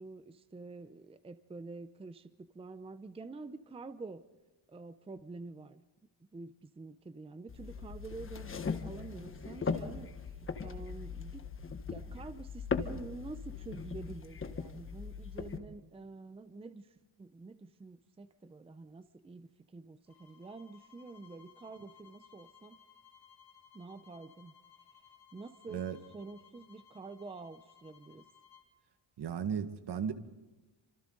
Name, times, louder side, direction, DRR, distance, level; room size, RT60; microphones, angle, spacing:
voice 1, 0.0-4.2 4.7-5.8 6.3-10.1 10.6-11.4 11.9-22.8 23.7-24.5 25.3-28.3, right 3 dB, 15° right, 12 dB, 0.6 m, -48 dB
sound 1, 7.5-15.6, left 5 dB, 30° left, 1.4 m, -39 dB
sound 2, 20.1-28.7, left 8 dB, 60° left, 7.9 m, -61 dB
voice 2, 29.2-30.1, right 7 dB, 65° right, 8 dB, 1.8 m, -35 dB
29.5 x 26.0 x 3.9 m, 1.1 s
cardioid pair, 145°, 44 cm